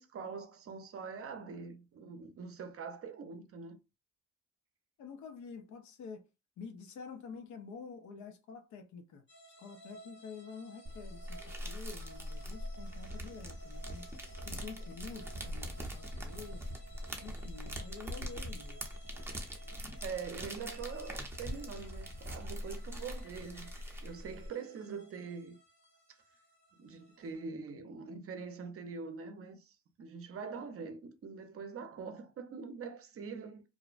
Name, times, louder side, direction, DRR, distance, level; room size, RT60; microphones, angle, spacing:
voice 1, 0.0-3.8 20.0-23.7 24.0-25.6 26.8-33.6, right 5 dB, 50° right, 0.6 m, -44 dB
voice 2, 5.0-6.2 6.6-9.2 9.6-14.1 14.5-16.7 17.2-18.8, left 5 dB, 70° left, 0.6 m, -48 dB
sound 1, 9.3-27.4, right 2 dB, 40° left, 0.8 m, -57 dB
sound 2, 10.8-24.5, equal, 10° right, 0.6 m, -42 dB
2.6 x 2.1 x 2.4 m
cardioid pair, 90°, 30 cm